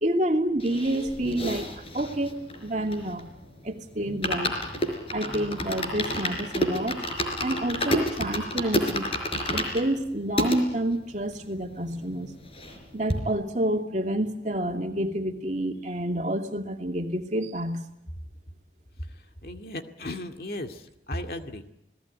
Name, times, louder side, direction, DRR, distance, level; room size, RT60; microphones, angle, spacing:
voice 1, 0.0-2.3 2.6-3.2 3.6-4.8 5.1-7.0 7.4-9.1 9.5-12.3 12.9-17.8, right 1 dB, 40° right, 3 dB, 2.6 m, -28 dB
sound 1, 0.6-3.4 3.7-3.8 4.1-10.6 11.2-11.3 11.4-11.5 11.8-12.8 13.1-13.2, left 1 dB, 35° left, 4.4 m, -30 dB
voice 2, 19.4-21.7, left 1 dB, 55° left, 5 dB, 2.2 m, -36 dB
29.0 x 19.0 x 9.6 m, 0.80 s
head